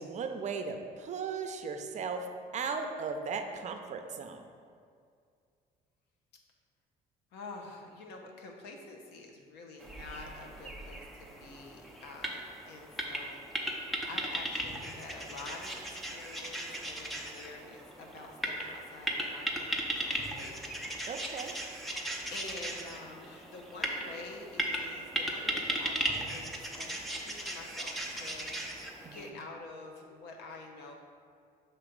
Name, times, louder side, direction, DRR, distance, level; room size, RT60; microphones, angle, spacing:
voice 1, 0.0-4.5 21.1-21.6 29.0-29.3, right 5 dB, 45° right, 6 dB, 0.5 m, -37 dB
voice 2, 7.3-13.5 14.0-21.0 22.3-30.9, left 3 dB, 85° left, 1 dB, 0.9 m, -48 dB
sound 1, 9.8-29.3, right 1 dB, ahead, 0.6 m, -37 dB
6.6 x 2.9 x 5.1 m, 2.2 s
cardioid pair, 110°, 17 cm